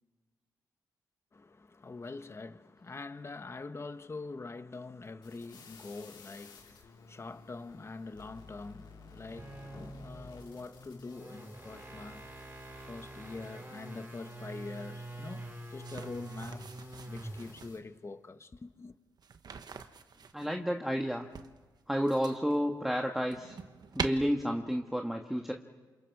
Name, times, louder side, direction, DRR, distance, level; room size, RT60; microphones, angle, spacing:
voice 1, 1.3-16.7 17.1-18.9, left 3 dB, 35° left, 1.3 m, -45 dB
sound 1, 5.2-17.8, left 4 dB, 90° left, 3.8 m, -56 dB
sound 2, 9.2-17.7, right 1 dB, 30° right, 4.1 m, -46 dB
sound 3, 15.8-17.8 19.2-20.5 21.3-22.6 23.0-24.1, right 6 dB, 60° right, 1.3 m, -43 dB
voice 2, 20.3-21.3 21.9-23.6 23.9-25.5, equal, 5° right, 1.6 m, -31 dB
28.5 x 28.0 x 4.9 m
cardioid pair, 65°, 8 cm